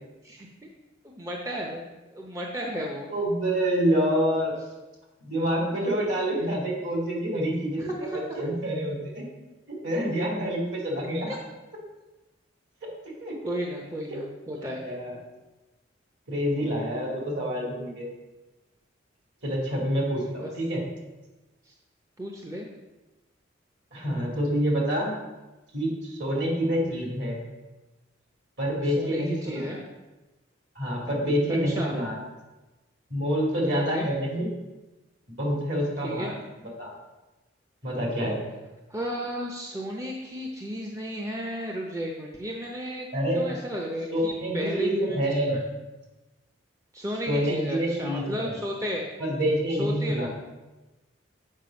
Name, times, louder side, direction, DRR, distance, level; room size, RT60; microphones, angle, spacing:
voice 1, 1.0-1.8 2.1-3.1 7.8-8.2 11.3-11.4 13.4-14.8 20.3-20.5 21.6-21.7 22.2-22.7 26.9-27.0 29.0-29.8 31.7-31.9 33.7-34.1 36.0-36.3 38.9-43.1 43.3-45.6 46.9-49.0 49.8-50.3, equal, 15° right, -1 dB, 0.7 m, -34 dB
voice 2, 3.1-4.6 5.2-9.3 9.7-11.4 12.8-12.9 13.2-13.4 14.6-15.1 16.3-18.1 19.4-20.9 23.9-25.2 25.7-27.4 28.6-29.8 30.8-32.2 33.1-34.5 35.3-36.3 36.8-36.9 37.8-38.4 43.1-43.5 44.1-45.7 47.3-48.6 49.2-50.3, equal, 60° right, -2 dB, 2.4 m, -27 dB
7.4 x 5.0 x 5.2 m, 1.1 s
head